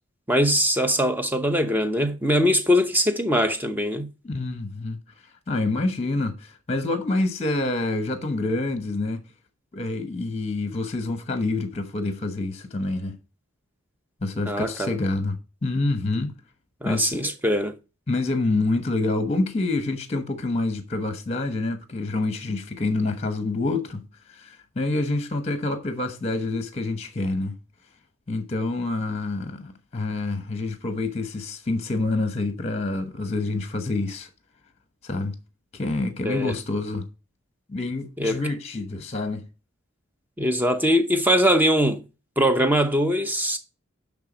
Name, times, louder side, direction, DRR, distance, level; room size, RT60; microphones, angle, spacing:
voice 1, 0.3-4.1 14.5-15.0 16.8-17.7 36.2-36.5 38.2-38.4 40.4-42.0 42.4-43.6, equal, 10° right, 0.7 m, -22 dB
voice 2, 4.2-5.0 5.5-9.2 9.7-13.2 14.2-16.4 16.8-17.3 18.1-24.0 24.3-27.6 28.3-34.3 35.0-35.4 35.7-37.1 37.7-39.5, left 2 dB, 30° left, 1.1 m, -27 dB
10.5 x 3.6 x 5.0 m
head